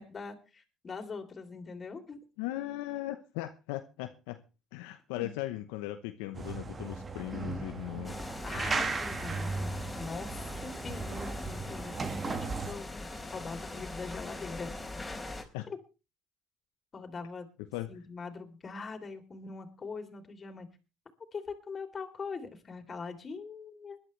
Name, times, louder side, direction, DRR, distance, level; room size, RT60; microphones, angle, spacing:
voice 1, 0.0-2.2 5.2-5.3 8.4-9.7 9.9-14.7 15.7-15.8 16.9-17.5 17.9-20.7 21.3-24.0, left 4 dB, 35° left, 3.4 m, -42 dB
voice 2, 2.4-4.4 4.7-8.2 15.5-15.7 17.7-17.9, left 16 dB, 80° left, 0.8 m, -38 dB
sound 1, 6.3-12.7, right 4 dB, 30° right, 1.7 m, -36 dB
sound 2, 8.0-15.4, left 2 dB, 15° left, 4.2 m, -42 dB
21.0 x 11.5 x 3.2 m
hypercardioid pair, 65°, 0 cm